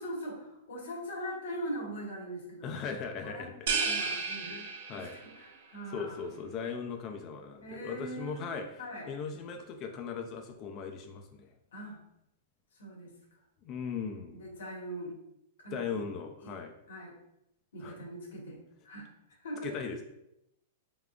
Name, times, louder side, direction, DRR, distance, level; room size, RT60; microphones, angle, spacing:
voice 1, 0.0-2.9 3.2-6.2 7.6-9.1 11.7-12.0 12.7-13.1 14.3-15.1 15.6-16.0 16.4-16.5 16.9-17.1 17.7-18.6 18.8-19.1 19.4-19.8, equal, 85° left, 0 dB, 1.3 m, -41 dB
voice 2, 2.6-3.7 4.4-5.2 5.9-11.5 13.6-14.5 15.7-16.7 17.8-18.0 19.6-20.0, left 6 dB, 35° left, 4 dB, 0.4 m, -39 dB
sound 1, 3.7-5.4, right 5 dB, 65° right, 0.6 m, -32 dB
4.7 x 3.6 x 2.3 m, 0.82 s
hypercardioid pair, 135°, 0 cm